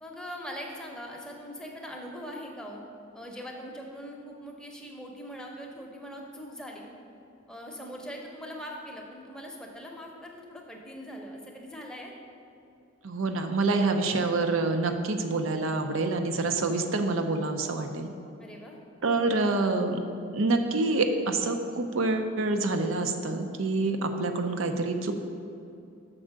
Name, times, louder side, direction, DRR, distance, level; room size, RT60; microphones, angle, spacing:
voice 1, 0.0-2.8 3.1-6.9 7.5-12.1 18.4-18.8, equal, 5° left, -1 dB, 0.7 m, -41 dB
voice 2, 13.0-18.1 19.0-20.0 20.3-25.1, right 3 dB, 85° right, 6 dB, 0.6 m, -27 dB
6.2 x 4.5 x 6.3 m, 2.7 s
head